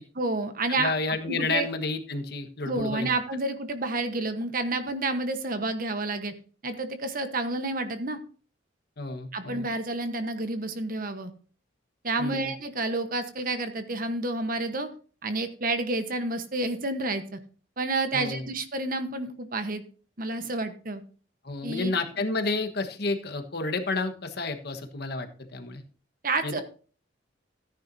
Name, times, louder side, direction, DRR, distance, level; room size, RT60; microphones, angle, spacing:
voice 1, 0.2-0.9 1.3-1.7 2.7-6.3 6.6-8.2 9.3-11.3 12.0-14.9 15.2-17.4 17.8-19.8 20.2-21.0 21.6-21.9 26.2-26.6, right 2 dB, 45° right, 9 dB, 1.2 m, -29 dB
voice 2, 0.8-3.1 9.0-9.7 12.2-12.5 18.1-18.4 21.4-25.8 26.4-26.6, left 3 dB, 55° left, 6 dB, 1.4 m, -30 dB
14.5 x 10.0 x 2.7 m, 0.39 s
head